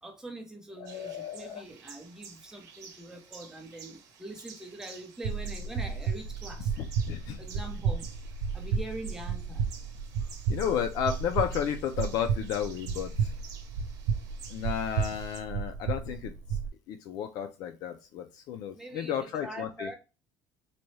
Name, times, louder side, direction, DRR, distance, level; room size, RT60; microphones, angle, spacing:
voice 1, 0.0-6.9 7.4-8.0 8.5-9.7 18.7-19.9, right 1 dB, 5° right, 0.8 m, -43 dB
voice 2, 0.8-1.6 6.8-7.4 10.5-13.3 14.5-16.3 16.9-19.9, left 9 dB, 60° left, 0.5 m, -33 dB
sound 1, 0.9-15.4, right 6 dB, 50° right, 1.1 m, -51 dB
sound 2, 5.2-16.7, right 6 dB, 70° right, 0.5 m, -32 dB
4.0 x 2.3 x 3.1 m
cardioid pair, 155°, 7 cm